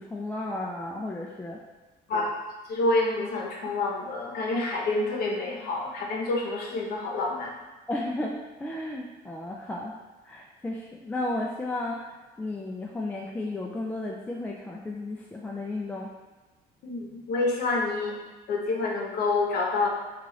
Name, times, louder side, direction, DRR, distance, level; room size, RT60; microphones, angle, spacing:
voice 1, 0.0-1.6 7.9-10.0 10.2-16.1, left 2 dB, 10° left, -2 dB, 0.3 m, -33 dB
voice 2, 2.7-7.5 16.8-18.1 18.5-19.9, left 3 dB, 65° left, -1 dB, 0.8 m, -27 dB
3.1 x 2.4 x 3.6 m, 1.2 s
cardioid pair, 110°, 17 cm